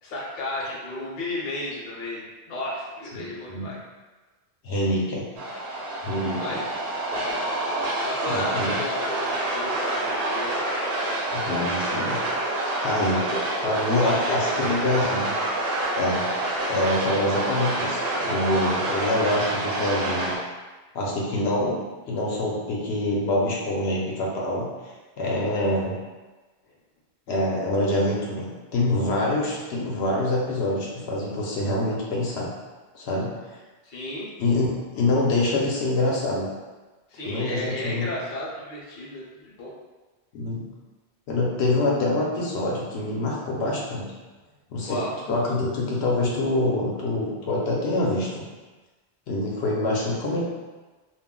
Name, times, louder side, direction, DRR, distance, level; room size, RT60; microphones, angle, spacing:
voice 1, 0.0-3.8 5.9-6.0 6.3-6.7 8.0-10.6 13.1-13.4 14.0-15.2 33.8-34.3 37.1-39.7 44.8-45.2, left 1 dB, 55° left, -5 dB, 0.8 m, -33 dB
voice 2, 3.1-3.7 4.6-5.2 6.0-6.6 8.3-8.7 11.3-12.2 12.8-13.2 13.6-15.3 15.9-16.3 16.7-20.4 20.9-24.7 25.2-25.9 27.3-32.5 32.9-33.3 34.4-36.5 37.3-38.1 40.3-40.7 41.3-44.1 44.7-48.5 49.3-50.5, left 1 dB, 80° left, -4 dB, 0.9 m, -25 dB
sound 1, 5.4-20.4, right 1 dB, 70° right, 0.8 m, -27 dB
2.4 x 2.0 x 3.6 m, 1.2 s
omnidirectional pair, 1.1 m